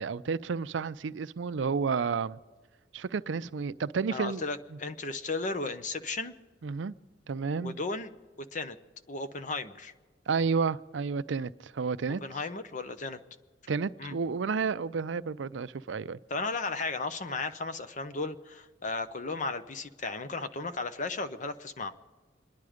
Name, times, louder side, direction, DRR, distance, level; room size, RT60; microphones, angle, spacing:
voice 1, 0.0-2.4 2.9-4.4 6.6-6.9 7.3-7.8 10.3-12.2 13.7-16.2, right 5 dB, 80° right, 0.5 m, -31 dB
voice 2, 4.1-6.3 7.6-8.1 8.5-8.8 9.1-9.9 12.2-13.2 14.0-14.1 16.3-22.0, left 3 dB, 45° left, 0.8 m, -35 dB
27.0 x 10.5 x 5.0 m
head